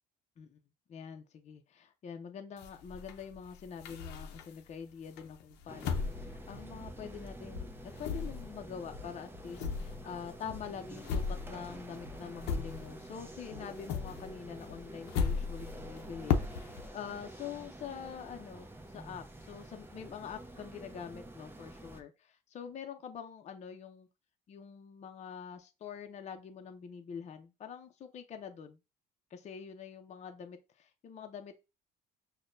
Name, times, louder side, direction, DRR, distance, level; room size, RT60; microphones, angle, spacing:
voice 1, 0.9-24.1 24.5-28.8 29.3-31.6, left 7 dB, 40° left, 0.6 m, -45 dB
sound 1, 2.6-4.7 5.2-7.3 7.5-13.2 13.5-16.9, left 6 dB, 90° left, 0.6 m, -37 dB
sound 2, 5.7-22.0, right 1 dB, 15° right, 0.6 m, -49 dB
6.1 x 2.2 x 2.6 m
cardioid pair, 110°, 17 cm